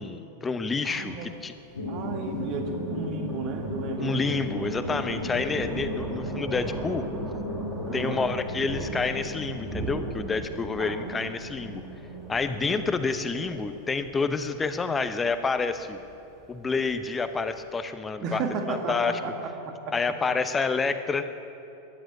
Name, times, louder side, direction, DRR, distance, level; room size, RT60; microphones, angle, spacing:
voice 1, 0.0-1.5 4.0-7.0 7.9-11.8 12.3-16.0 16.5-18.4 18.7-19.1 19.9-21.3, left 4 dB, 15° left, 10 dB, 0.8 m, -28 dB
Thunder, 0.8-17.7, right 2 dB, 20° right, 2.4 m, -40 dB
voice 2, 0.8-1.3 1.8-4.3 7.8-8.2 10.8-11.3 12.6-12.8 18.2-20.2, right 4 dB, 40° right, 5 dB, 1.8 m, -34 dB
sound 1, 1.7-14.3, equal, 70° left, 2.2 m, -36 dB
15.0 x 11.0 x 8.3 m, 2.9 s
figure-of-eight pair, 90°, 0 cm